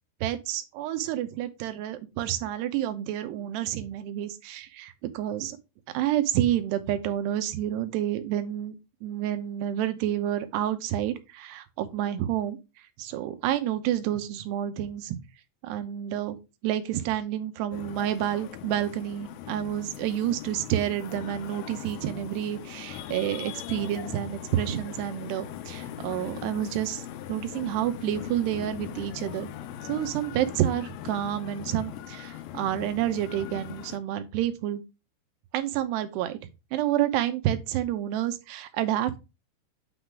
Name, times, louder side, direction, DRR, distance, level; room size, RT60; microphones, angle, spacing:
voice 1, 0.2-5.6 5.9-12.6 13.0-15.2 15.6-16.4 16.6-27.0 27.3-29.5 29.8-34.8 35.5-36.4 36.7-39.2, right 12 dB, 80° right, 9 dB, 3.0 m, -29 dB
sound 1, 17.7-34.0, left 11 dB, 75° left, 2.4 m, -40 dB
9.2 x 3.9 x 4.6 m, 0.26 s
omnidirectional pair, 4.8 m